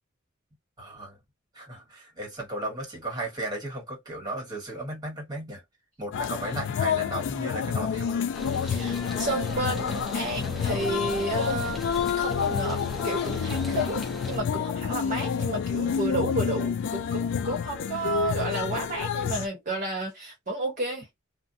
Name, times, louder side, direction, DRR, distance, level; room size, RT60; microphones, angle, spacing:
voice 1, 0.8-1.2 1.5-5.6 6.0-8.2 9.0-9.2, right 1 dB, 20° right, 1.3 m, -35 dB
sound 1, 6.1-19.5, left 7 dB, 60° left, 0.3 m, -29 dB
sound 2, 8.3-14.4, right 1 dB, ahead, 0.6 m, -40 dB
voice 2, 8.5-21.1, right 1 dB, 40° right, 0.9 m, -31 dB
2.5 x 2.1 x 2.6 m
head